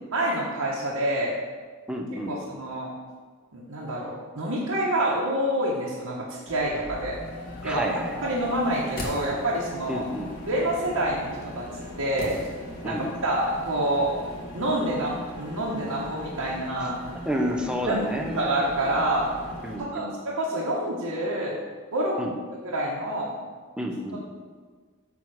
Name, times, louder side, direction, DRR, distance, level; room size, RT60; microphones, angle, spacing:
voice 1, 0.1-1.3 2.3-2.9 3.5-7.2 7.6-10.0 10.5-11.7 12.0-12.3 12.8-14.1 14.5-17.0 17.9-18.0 18.3-19.3 19.8-21.6 21.9-22.2 22.6-23.3, right 1 dB, 85° right, -5 dB, 1.2 m, -27 dB
voice 2, 1.9-2.4 7.6-8.4 9.9-10.3 12.8-13.1 17.2-18.5 19.6-20.1 22.2-22.3 23.8-24.2, equal, 5° right, 1 dB, 0.8 m, -30 dB
sound 1, 6.5-19.8, left 1 dB, 65° left, 2.2 m, -40 dB
sound 2, 8.6-9.8 12.2-13.1 13.3-13.4, equal, 45° left, 1.7 m, -37 dB
9.1 x 3.8 x 6.3 m, 1.5 s
head